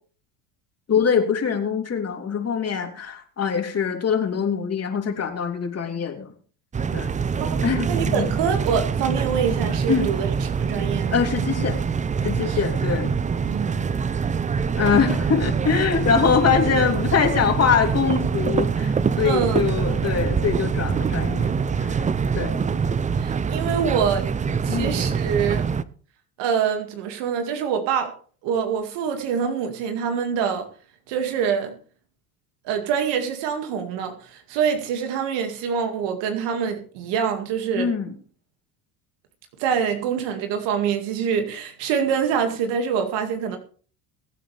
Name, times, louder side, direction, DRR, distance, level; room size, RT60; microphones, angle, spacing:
voice 1, 0.9-6.3 6.9-7.1 7.6-8.3 9.9-10.1 11.1-11.8 12.2-13.1 14.7-22.0 22.3-22.6 24.7-24.9 37.7-38.1, left 6 dB, 35° left, 3 dB, 3.1 m, -23 dB
sound 1, 6.7-25.8, right 6 dB, 15° right, 0.5 m, -24 dB
voice 2, 7.5-11.2 12.5-12.6 13.4-14.2 19.2-19.6 23.2-24.3 24.6-25.7 26.4-28.1 28.4-30.7 31.1-31.7 32.6-37.9 39.6-43.6, right 7 dB, 70° right, 5 dB, 2.3 m, -25 dB
22.0 x 8.7 x 3.4 m, 0.41 s
supercardioid pair, 105°, 44 cm